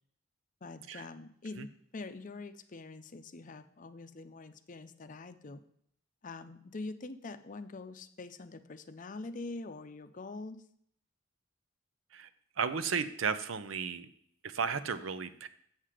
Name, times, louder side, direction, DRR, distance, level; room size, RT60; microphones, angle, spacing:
voice 1, 0.6-5.6 6.2-10.6, left 3 dB, 40° left, 10 dB, 0.6 m, -44 dB
voice 2, 12.6-14.1 14.4-15.5, right 6 dB, 75° right, 12 dB, 0.6 m, -34 dB
7.6 x 7.3 x 4.9 m, 0.66 s
head